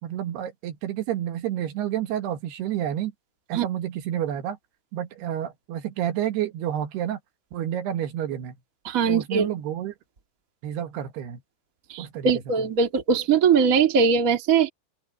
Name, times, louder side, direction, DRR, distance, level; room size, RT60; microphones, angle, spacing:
voice 1, 0.0-3.1 3.5-4.6 4.9-7.2 7.5-8.6 9.1-10.0 10.6-11.4 12.0-12.3, right 11 dB, 75° right, 3.6 m, -29 dB
voice 2, 8.8-9.5 11.9-14.7, right 6 dB, 30° right, 1.6 m, -21 dB
open air
omnidirectional pair, 4.7 m